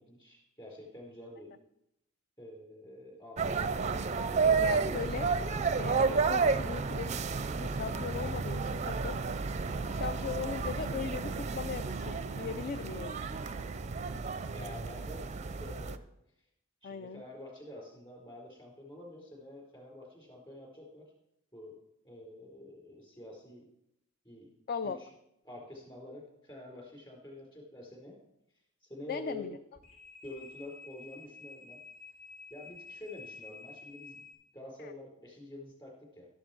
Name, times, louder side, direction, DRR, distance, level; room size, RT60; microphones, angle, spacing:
voice 1, 0.0-1.5 2.4-3.8 14.5-16.0 16.8-21.1 21.5-21.8 22.0-23.7 24.2-24.5 24.8-25.1 25.4-28.2 28.8-29.6 30.2-31.8 32.5-34.2 34.5-36.3, left 1 dB, 20° left, -1 dB, 4.3 m, -48 dB
sound 1, 3.4-16.0, right 4 dB, 30° right, 0.5 m, -32 dB
voice 2, 4.6-5.3 5.7-7.1 7.6-9.2 9.8-13.1 16.8-17.2 24.7-25.0 29.1-29.6 34.8-34.9, left 6 dB, 40° left, 12 dB, 0.4 m, -38 dB
Bowed string instrument, 7.6-15.4, right 6 dB, 85° right, 0.4 m, -49 dB
sound 2, 29.8-34.3, left 5 dB, 65° left, 3.9 m, -50 dB
12.5 x 11.5 x 4.5 m, 0.82 s
head